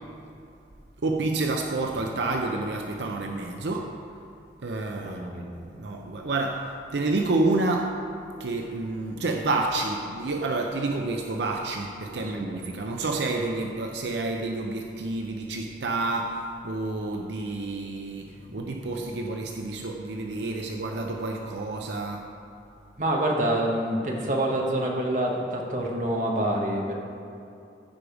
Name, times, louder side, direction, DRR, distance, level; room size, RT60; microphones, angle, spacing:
voice 1, 1.0-4.0 4.6-5.2 5.7-8.0 8.4-22.3, right 2 dB, 80° right, 2 dB, 0.6 m, -29 dB
voice 2, 5.0-5.5 12.1-12.7 18.5-19.1 23.0-26.9, right 1 dB, 45° right, -1 dB, 1.3 m, -27 dB
14.0 x 5.0 x 5.1 m, 2.7 s
head